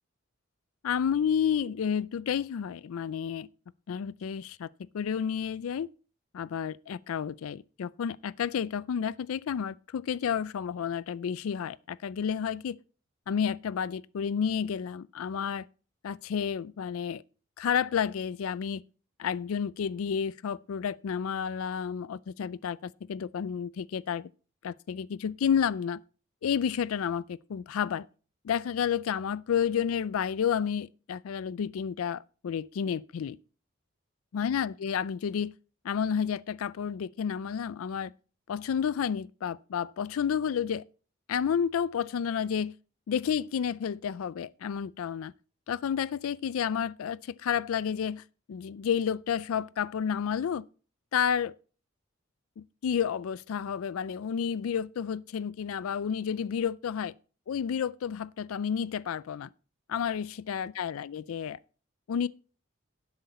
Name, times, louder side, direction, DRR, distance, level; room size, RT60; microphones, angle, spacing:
voice 1, 0.8-3.5 3.9-4.7 4.9-5.9 6.3-12.7 13.3-15.7 16.0-17.2 17.6-18.8 19.2-24.3 24.6-26.0 26.4-28.0 28.4-33.4 34.3-35.5 35.8-38.1 38.5-40.8 41.3-42.7 43.1-45.3 45.7-48.2 48.5-50.6 51.1-51.5 52.6-57.1 57.5-59.5 59.9-61.6 62.1-62.3, left 7 dB, 85° left, 0.4 m, -30 dB
10.5 x 8.0 x 4.1 m
head